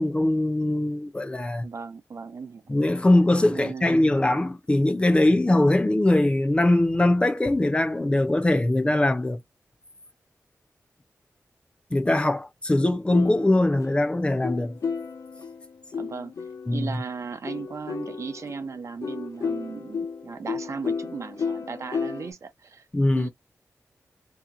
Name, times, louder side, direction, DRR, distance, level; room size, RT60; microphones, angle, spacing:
voice 1, 0.0-1.7 2.7-9.4 11.9-14.8 16.7-16.9 22.9-23.3, left 1 dB, 20° left, 0.6 m, -21 dB
voice 2, 1.6-2.8 3.5-4.4 15.9-16.3 16.7-22.8 23.1-23.3, right 5 dB, 65° right, 0.6 m, -37 dB
sound 1, 13.1-17.0 17.4-22.3, left 5 dB, 75° left, 0.6 m, -33 dB
2.9 x 2.2 x 3.7 m
wide cardioid pair, 115°, 5 cm